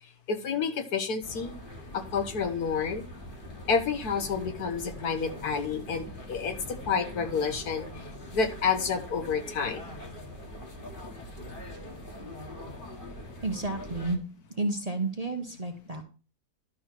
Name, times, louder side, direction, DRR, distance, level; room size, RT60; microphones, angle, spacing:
voice 1, 0.3-1.5 1.9-3.0 3.7-6.5 6.9-7.9 8.3-9.8, left 5 dB, 70° left, 7 dB, 1.6 m, -29 dB
sound 1, 1.2-14.2, left 1 dB, 35° left, 1.5 m, -43 dB
voice 2, 13.4-14.2 14.6-16.0, right 2 dB, 30° right, 4 dB, 0.9 m, -31 dB
12.0 x 5.5 x 4.6 m, 0.36 s
omnidirectional pair, 1.7 m